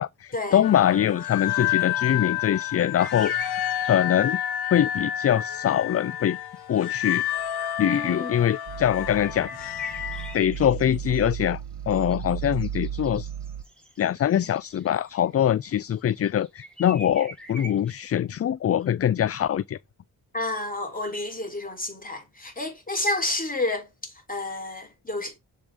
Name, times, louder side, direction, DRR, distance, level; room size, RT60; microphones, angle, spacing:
voice 1, 0.0-3.6 3.9-4.4 4.7-6.4 6.7-7.2 7.8-9.5 10.3-11.6 11.9-13.3 14.0-19.8, left 10 dB, 40° left, 0.4 m, -23 dB
sound 1, 0.6-10.4, left 11 dB, 80° left, 0.8 m, -29 dB
sound 2, 0.6-4.1 4.5-5.0 5.5-5.6 6.4-7.7 9.1-15.3 15.7-18.1, right 1 dB, ahead, 3.1 m, -47 dB
voice 2, 7.8-8.4 20.3-25.4, left 2 dB, 20° left, 3.8 m, -30 dB
sound 3, 8.7-13.6, right 9 dB, 75° right, 0.6 m, -34 dB
7.2 x 5.2 x 3.6 m
cardioid pair, 65°, 38 cm